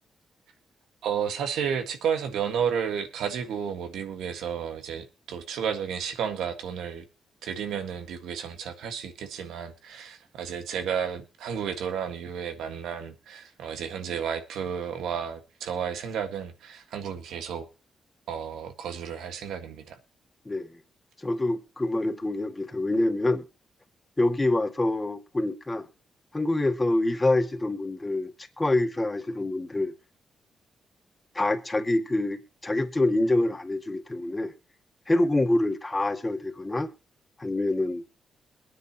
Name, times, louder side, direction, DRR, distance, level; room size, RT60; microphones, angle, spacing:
voice 1, 1.0-7.1 7.4-17.7 18.3-20.0, right 7 dB, 90° right, 1.6 m, -32 dB
voice 2, 21.2-23.4 24.2-25.9 26.3-29.9 31.3-34.5 35.1-36.9 37.4-38.0, left 2 dB, 20° left, 2.1 m, -26 dB
22.0 x 9.6 x 2.9 m
cardioid pair, 70°, 0 cm